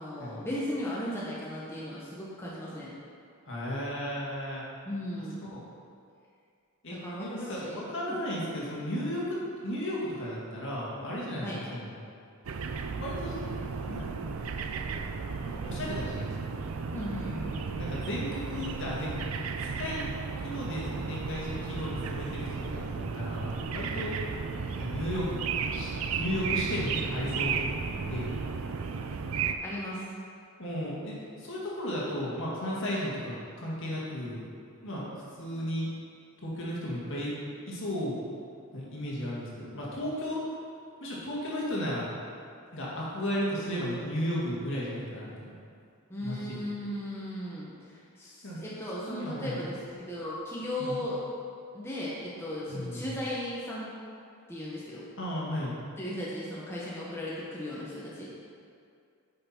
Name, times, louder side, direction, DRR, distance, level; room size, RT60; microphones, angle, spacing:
voice 1, 0.0-2.9 4.8-5.4 6.8-7.8 8.0-8.2 11.4-11.6 16.9-17.3 29.6-30.0 46.1-47.7 48.2-51.2 51.7-53.9 54.5-55.1 56.0-58.3, left 1 dB, 10° left, -7 dB, 1.0 m, -36 dB
voice 2, 3.5-4.6 5.5-5.6 6.8-12.0 13.0-13.4 13.8-14.1 15.6-16.3 17.2-19.3 19.6-20.0 20.4-24.2 24.8-25.4 25.7-27.6 28.1-28.3 30.6-34.4 34.8-35.9 36.4-37.3 37.7-38.1 38.7-40.4 41.0-42.1 42.7-45.5 46.2-46.7 48.4-48.6 49.1-49.6 50.8-51.0 52.7-53.1 55.2-55.8, equal, 55° left, -6 dB, 1.9 m, -34 dB
sound 1, 12.4-29.5, right 5 dB, 70° right, 0.5 m, -34 dB
8.4 x 5.7 x 4.4 m, 2.4 s
head